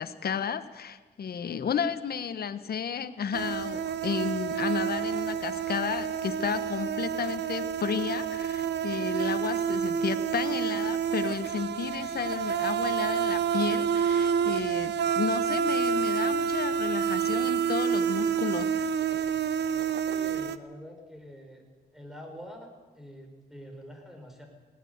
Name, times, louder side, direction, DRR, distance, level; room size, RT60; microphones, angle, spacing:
voice 1, 0.0-18.7, left 7 dB, 65° left, 11 dB, 1.1 m, -32 dB
sound 1, 3.3-20.6, right 7 dB, 80° right, 0.8 m, -28 dB
voice 2, 20.0-21.6 21.9-24.5, equal, ahead, 3 dB, 4.9 m, -46 dB
19.0 x 18.0 x 8.1 m, 1.3 s
wide cardioid pair, 105°, 17 cm